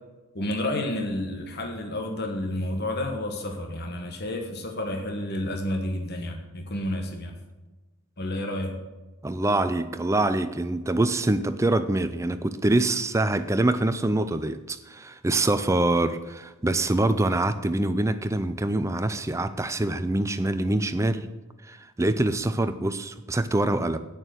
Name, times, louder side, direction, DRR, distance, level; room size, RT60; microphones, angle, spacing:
voice 1, 0.3-7.3 8.2-8.8, left 1 dB, 45° left, 3 dB, 1.2 m, -30 dB
voice 2, 9.2-21.3 21.6-24.0, right 2 dB, 15° right, 11 dB, 0.4 m, -25 dB
9.0 x 6.6 x 7.7 m, 1.1 s
head